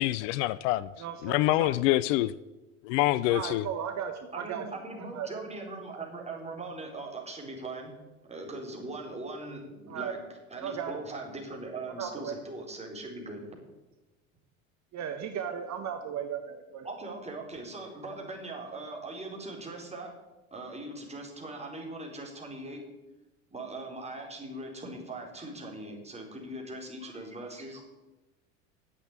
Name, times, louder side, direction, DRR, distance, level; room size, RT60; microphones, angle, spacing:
voice 1, 0.0-0.9 1.2-2.3 2.8-3.7, left 16 dB, 60° left, 0.6 m, -26 dB
voice 2, 1.0-1.7 3.3-4.7 5.1-5.3 9.9-10.1 10.6-10.9 12.0-12.3 14.9-16.9, right 8 dB, 45° right, 1.3 m, -36 dB
voice 3, 4.3-7.9 8.3-10.2 10.5-13.4 16.8-20.1 20.5-22.8 23.5-27.8, right 2 dB, 15° right, 4.4 m, -40 dB
11.0 x 7.9 x 8.8 m
hypercardioid pair, 75°, 41 cm